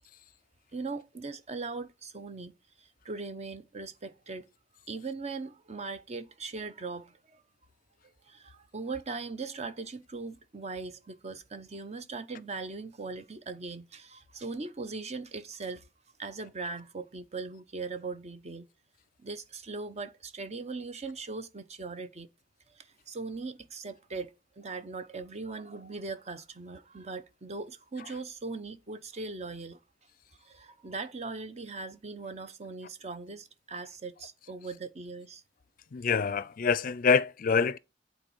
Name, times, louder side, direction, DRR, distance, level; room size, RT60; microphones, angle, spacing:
voice 1, 0.7-2.5 2.8-4.5 4.9-7.4 8.3-15.8 16.2-18.7 19.2-22.3 22.7-29.8 30.4-35.4, right 3 dB, 35° right, 0.8 m, -40 dB
voice 2, 35.9-37.8, left 5 dB, 50° left, 0.5 m, -26 dB
8.8 x 4.2 x 7.1 m
head